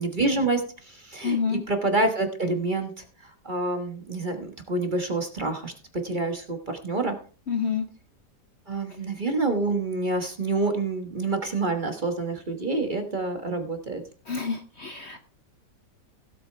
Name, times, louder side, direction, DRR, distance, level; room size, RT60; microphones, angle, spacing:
voice 1, 0.0-2.9 3.4-5.7 6.0-7.1 8.7-14.0, right 2 dB, 30° right, 5 dB, 1.3 m, -27 dB
voice 2, 1.2-1.6 7.5-7.9 14.3-15.2, left 6 dB, 50° left, 6 dB, 0.9 m, -28 dB
16.5 x 7.9 x 3.3 m, 0.38 s
omnidirectional pair, 1.8 m